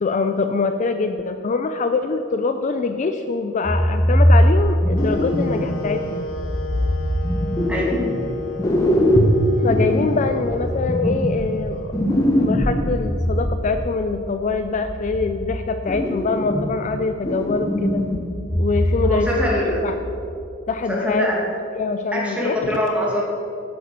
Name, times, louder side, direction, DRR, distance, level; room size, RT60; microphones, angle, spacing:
voice 1, 0.0-6.2 9.6-11.9 12.4-18.0 18.6-19.6 19.8-19.9 20.7-21.3 21.8-22.8, left 4 dB, 40° left, 7 dB, 0.4 m, -24 dB
sound 1, 3.6-5.9 6.3-8.3 8.6-13.6 14.5-15.5 15.9-16.9 17.2-19.2 19.5-19.7 20.2-20.3, equal, 15° left, 1.1 m, -21 dB
sound 2, 4.9-12.9, left 3 dB, 85° left, 1.0 m, -34 dB
voice 2, 19.0-19.8 20.9-21.3 22.1-23.2, left 1 dB, 5° right, -4 dB, 2.2 m, -23 dB
8.5 x 7.6 x 6.7 m, 2.6 s
head